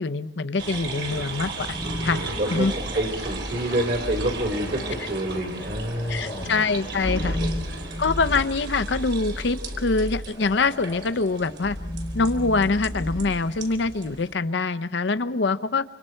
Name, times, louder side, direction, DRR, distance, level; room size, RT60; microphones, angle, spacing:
voice 1, 0.0-1.8 2.0-2.2 2.5-2.7 6.1-7.4 8.0-11.8 12.1-15.8, left 3 dB, 70° left, 11 dB, 0.7 m, -24 dB
sound 1, 0.6-14.3, right 3 dB, 70° right, 3.9 m, -36 dB
sound 2, 1.5-14.3, left 1 dB, 30° left, 0.9 m, -34 dB
voice 2, 2.4-6.6 7.4-7.6, right 1 dB, 55° right, 2 dB, 3.2 m, -28 dB
28.5 x 26.0 x 4.5 m, 1.2 s
head